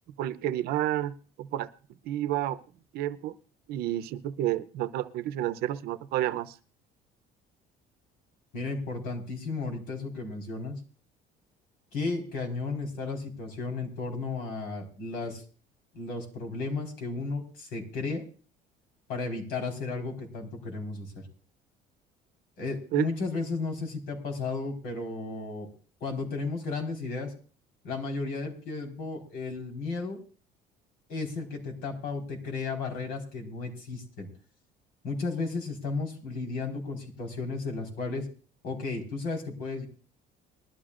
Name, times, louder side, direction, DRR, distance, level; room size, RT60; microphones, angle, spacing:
voice 1, 0.2-1.7 2.0-2.6 2.9-3.4 3.7-6.6 22.9-23.1, right 13 dB, 65° right, 0.7 m, -30 dB
voice 2, 8.5-10.8 11.9-15.4 15.9-18.2 19.1-21.2 22.6-25.7 26.0-27.3 27.8-30.2 31.1-34.3 35.0-38.3 38.6-39.8, left 3 dB, 65° left, 4.4 m, -34 dB
20.5 x 12.5 x 2.5 m
cardioid pair, 170°, 17 cm